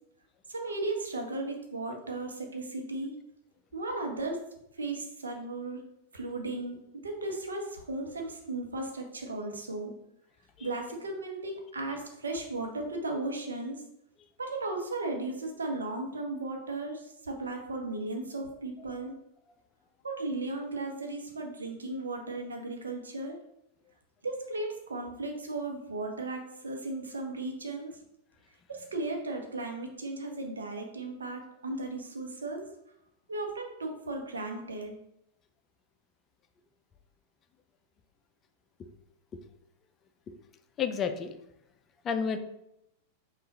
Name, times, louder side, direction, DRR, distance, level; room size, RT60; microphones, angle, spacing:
voice 1, 0.5-3.2 3.7-4.4 4.7-5.8 6.1-9.9 10.6-13.8 14.4-19.1 20.0-23.4 24.2-28.0 28.7-32.7 33.3-34.9, right 2 dB, 70° right, 2 dB, 0.8 m, -36 dB
voice 2, 40.8-41.3 42.0-42.4, left 6 dB, 25° left, 8 dB, 0.4 m, -31 dB
5.5 x 2.4 x 4.0 m, 0.83 s
figure-of-eight pair, 90°, 0 cm